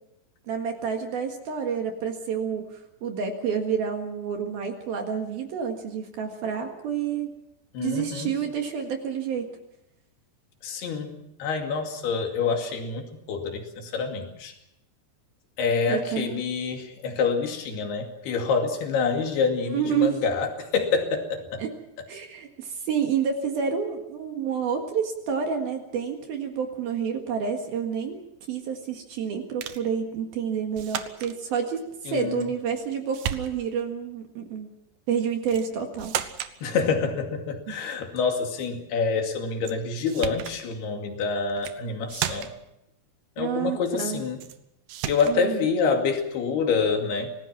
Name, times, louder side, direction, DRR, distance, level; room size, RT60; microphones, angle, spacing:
voice 1, 0.5-2.7 3.0-7.3 7.8-9.5 15.9-16.4 19.7-20.2 21.6-21.7 22.1-28.2 28.5-31.8 32.1-34.7 35.1-36.2 43.4-44.2 45.3-45.6, right 7 dB, 60° right, 4 dB, 3.2 m, -29 dB
voice 2, 7.7-8.3 10.6-14.6 15.6-21.6 32.1-32.5 36.6-42.5 43.4-44.4 45.1-47.3, left 5 dB, 60° left, 4 dB, 4.1 m, -27 dB
sound 1, 29.6-29.9 30.8-31.4 32.4-32.9 33.1-33.8 35.5-35.7 36.0-36.6 39.6-39.8 40.1-40.6 41.5-41.8 42.1-42.7 44.4-44.6 44.9-45.4, right 10 dB, 85° right, 1.9 m, -33 dB
26.5 x 19.0 x 5.9 m, 0.83 s
omnidirectional pair, 5.6 m